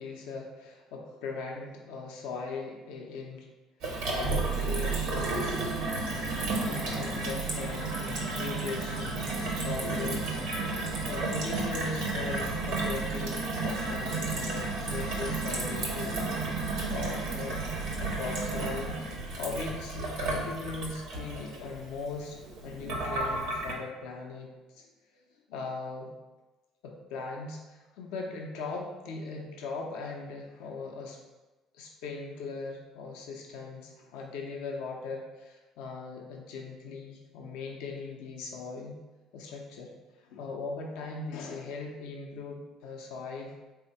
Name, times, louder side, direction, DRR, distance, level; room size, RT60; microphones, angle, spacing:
voice 1, 0.0-3.5 4.0-5.7 6.3-10.4 11.1-16.6 16.9-17.6 17.9-19.0 19.4-25.2 25.5-26.1 26.8-31.2 31.7-39.0 39.3-39.9 40.2-43.5, left 4 dB, 80° left, 0 dB, 0.5 m, -39 dB
Gurgling / Water tap faucet / Sink (filling or washing), 3.8-23.7, right 3 dB, 80° right, 0.8 m, -32 dB
3.5 x 2.1 x 4.0 m, 1.2 s
supercardioid pair, 80°, 0 cm